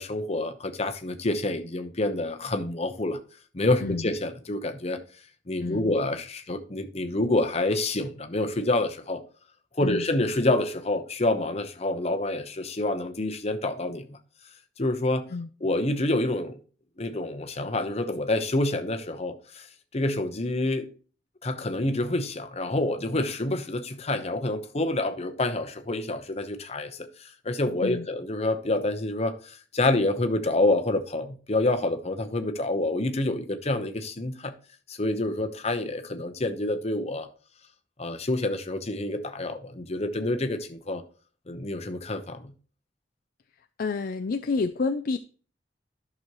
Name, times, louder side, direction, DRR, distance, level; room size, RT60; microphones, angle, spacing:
voice 1, 0.0-3.2 3.5-5.0 5.5-9.2 9.8-14.2 14.8-15.3 15.6-16.6 17.0-19.7 19.9-20.9 21.4-34.5 34.9-37.3 38.0-41.0 41.5-42.5, left 2 dB, 35° left, 0.9 m, -27 dB
voice 2, 43.8-45.2, left 4 dB, 50° left, 0.4 m, -29 dB
11.5 x 6.2 x 3.0 m
head